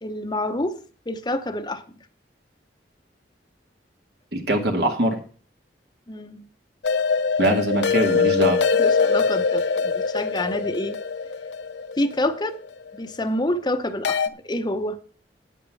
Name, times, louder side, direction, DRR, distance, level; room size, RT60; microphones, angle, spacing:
voice 1, 0.0-0.8 1.1-1.8 6.1-6.4 8.8-11.0 12.0-12.6 13.0-15.0, left 1 dB, 25° left, 7 dB, 0.8 m, -27 dB
voice 2, 4.3-5.2 7.4-8.6, right 1 dB, 65° right, 2 dB, 2.2 m, -22 dB
sound 1, 6.8-12.9 14.0-14.3, left 5 dB, 70° left, 0.7 m, -23 dB
9.4 x 8.9 x 5.3 m, 0.40 s
head